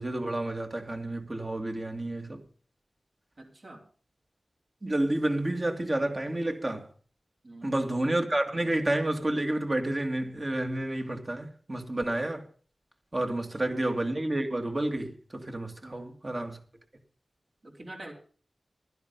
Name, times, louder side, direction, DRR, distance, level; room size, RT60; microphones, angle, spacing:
voice 1, 0.0-2.4 4.8-6.9 7.6-12.4 13.1-16.6, right 1 dB, 40° right, 2.0 m, -30 dB
voice 2, 3.4-3.8 7.4-7.8 13.6-13.8 15.8-16.2 17.6-18.1, right 1 dB, 60° right, 3.8 m, -45 dB
11.5 x 10.5 x 5.3 m
cardioid pair, 50°, 0 cm